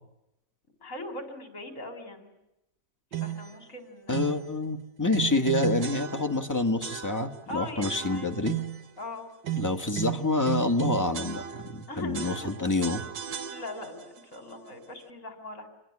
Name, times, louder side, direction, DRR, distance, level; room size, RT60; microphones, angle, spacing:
voice 1, 0.8-2.3 3.1-4.3 7.5-8.3 9.0-9.3 11.9-12.5 13.5-15.7, left 2 dB, 45° left, 7 dB, 4.5 m, -40 dB
sound 1, 3.1-3.5 4.1-4.5 5.1-6.5 6.8-7.4 7.8-8.9 9.4-11.8 12.1-14.0, right 11 dB, 80° right, 1.9 m, -35 dB
voice 2, 4.1-8.6 9.5-13.0, left 2 dB, 10° left, 5 dB, 1.6 m, -27 dB
26.5 x 21.0 x 9.8 m, 0.87 s
omnidirectional pair, 1.9 m